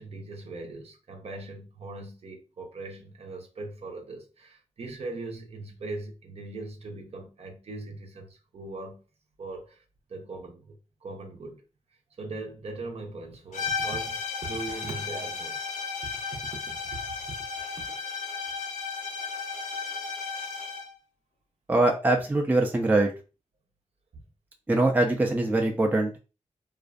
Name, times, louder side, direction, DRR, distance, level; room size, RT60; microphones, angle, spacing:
voice 1, 0.0-9.0 9.4-9.8 10.1-11.6 12.2-15.5 16.0-17.0 17.7-17.8 24.1-24.2, right 3 dB, 55° right, 0.7 m, -40 dB
sound 1, 13.5-20.9, left 5 dB, 75° left, 0.5 m, -34 dB
voice 2, 21.7-23.1 24.7-26.2, right 2 dB, 15° right, 0.4 m, -23 dB
2.5 x 2.2 x 2.4 m
cardioid pair, 90°, 13 cm